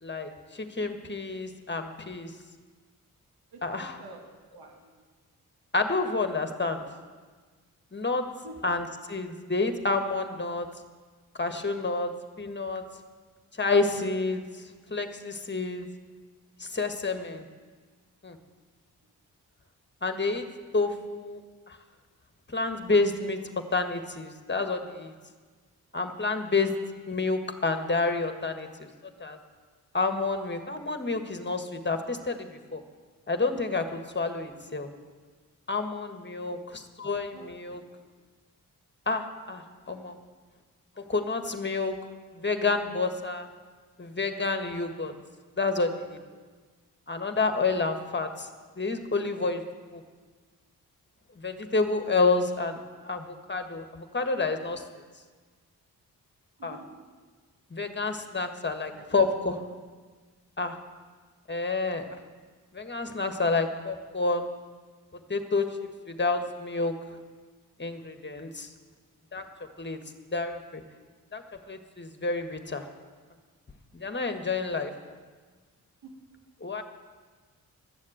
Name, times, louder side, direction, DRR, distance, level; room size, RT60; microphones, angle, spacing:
voice 1, 0.0-2.3 3.6-4.0 5.7-6.8 7.9-8.2 8.6-10.7 11.4-12.1 12.4-12.8 13.6-15.9 16.6-17.4 18.2-18.4 20.0-20.5 20.7-21.4 21.7-21.8 22.5-23.4 23.7-25.1 25.9-26.7 27.1-28.9 29.2-29.4 29.9-32.8 33.3-34.9 35.7-37.8 39.0-40.2 41.0-41.9 42.3-43.5 44.0-45.1 45.6-46.2 47.1-48.5 48.8-49.6 49.9-50.0 51.3-54.8 56.6-56.8 57.7-59.6 60.6-60.8 61.5-62.2 62.7-64.5 65.3-66.9 67.8-68.7 69.3-69.4 69.8-70.0 70.3-70.8 71.3-71.4 71.7-72.8 73.9-74.9 76.6-76.8, left 3 dB, 30° left, 7 dB, 1.6 m, -29 dB
voice 2, 3.5-4.2 4.5-5.0 8.2-8.5 36.4-36.5 37.0-37.5 38.0-38.1 56.6-56.9 58.6-59.1 76.0-76.1, right 2 dB, 80° right, 0 dB, 2.1 m, -49 dB
12.5 x 7.4 x 7.9 m, 1.4 s
supercardioid pair, 45°, 37 cm